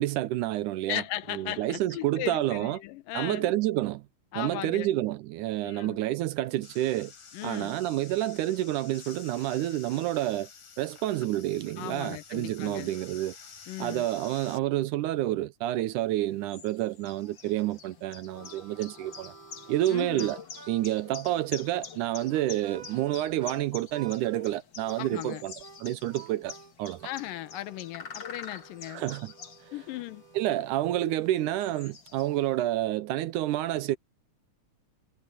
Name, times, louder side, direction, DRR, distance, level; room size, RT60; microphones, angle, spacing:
voice 1, 0.0-1.0 1.3-2.8 3.1-4.0 4.4-7.1 7.4-10.5 10.8-13.4 13.8-19.3 19.7-20.4 20.7-25.5 25.8-27.0 28.9-29.3 30.4-34.0, right 14 dB, 80° right, 2.1 m, -29 dB
voice 2, 0.9-3.5 4.3-4.9 5.6-6.0 7.3-7.8 11.8-12.9 13.7-14.1 19.9-20.3 25.0-25.4 27.0-29.0 29.7-30.2, left 15 dB, 90° left, 2.6 m, -37 dB
sound 1, 6.6-14.6, left 6 dB, 65° left, 4.8 m, -50 dB
sound 2, 16.1-32.6, left 6 dB, 40° left, 2.0 m, -47 dB
Harmonica, 17.8-23.6 23.9-24.4 24.8-30.8, right 5 dB, 25° right, 3.4 m, -52 dB
omnidirectional pair, 3.8 m